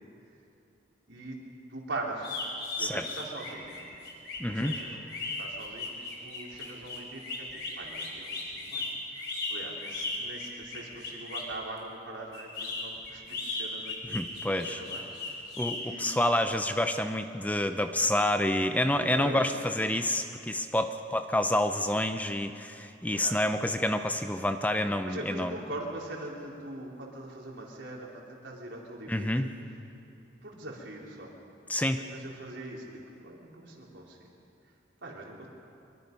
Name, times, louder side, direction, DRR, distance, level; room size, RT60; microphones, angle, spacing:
voice 1, 1.1-1.4 1.7-2.3 2.7-3.8 4.5-5.0 5.4-14.2 14.7-15.4 15.8-16.1 19.2-19.5 23.1-23.4 25.0-29.5 30.4-31.3 31.9-34.3 35.0-35.5, right 2 dB, 80° right, -2 dB, 4.2 m, -42 dB
sound 1, 2.2-11.5 12.3-15.8, left 3 dB, 60° left, 4.6 m, -37 dB
voice 2, 4.4-4.7 14.1-14.8 15.6-25.5 29.1-29.5 31.7-32.0, left 1 dB, 10° left, 8 dB, 0.7 m, -28 dB
24.5 x 23.0 x 5.5 m, 2.7 s
head